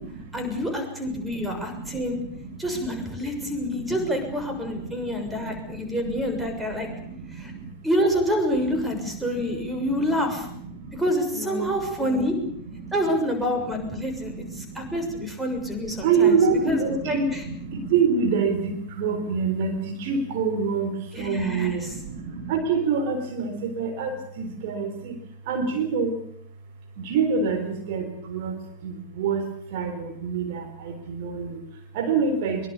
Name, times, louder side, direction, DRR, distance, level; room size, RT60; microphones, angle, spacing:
voice 1, 0.3-2.2 2.6-6.9 7.3-7.5 7.8-10.5 10.9-12.3 12.9-16.4 16.7-17.4 21.1-22.0, equal, 5° right, 5 dB, 6.6 m, -27 dB
voice 2, 11.3-11.7 12.0-12.2 16.0-17.3 17.9-18.6 19.0-19.7 20.1-20.9 21.2-21.8 22.5-23.5 23.8-24.1 24.4-24.9 25.5-26.1 27.1-28.0 28.3-28.5 29.2-29.4 29.7-29.9 30.2-30.4 31.2-31.5 32.0-32.6, right 5 dB, 50° right, 6 dB, 3.8 m, -24 dB
23.0 x 23.0 x 7.2 m, 0.70 s
figure-of-eight pair, 90°, 0 cm